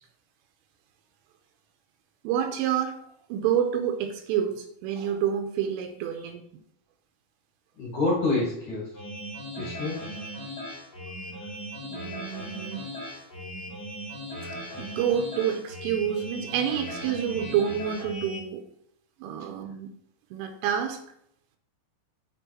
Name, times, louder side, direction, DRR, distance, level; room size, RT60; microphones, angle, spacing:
voice 1, 2.2-3.0 3.3-6.4 9.6-9.8 11.9-12.8 14.4-18.6 19.2-19.9 20.3-21.0, right 9 dB, 85° right, 5 dB, 3.1 m, -28 dB
voice 2, 7.8-9.0 9.6-10.2 11.4-11.5, left 2 dB, 55° left, -5 dB, 2.1 m, -28 dB
sound 1, 8.9-18.4, equal, 80° left, 0.9 m, -38 dB
7.4 x 6.9 x 2.9 m, 0.74 s
omnidirectional pair, 5.8 m